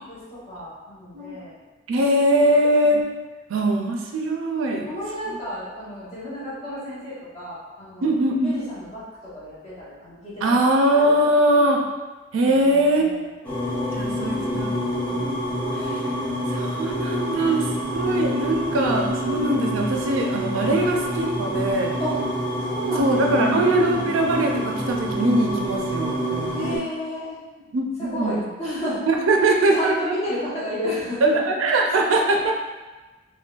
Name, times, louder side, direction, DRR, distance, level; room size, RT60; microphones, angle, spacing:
voice 1, 0.1-1.5 2.1-2.5 4.9-8.1 8.4-10.6 11.1-11.2 12.4-13.3 13.8-15.4 22.0-22.2 22.6-23.8 26.5-27.4 28.0-29.0 29.3-29.4 29.7-31.3 32.3-32.5, equal, 30° left, -9 dB, 1.0 m, -32 dB
voice 2, 1.9-3.0 3.5-4.9 8.0-8.6 10.4-11.8 12.3-13.1 14.0-14.7 15.8-16.0 16.5-17.7 17.9-21.9 23.0-26.7 27.7-28.4 29.1-30.2 31.2-32.5, right 1 dB, 85° right, 1 dB, 0.4 m, -21 dB
sound 1, 13.4-26.8, equal, 10° left, 0.6 m, -27 dB
3.7 x 2.1 x 2.4 m, 1.2 s
head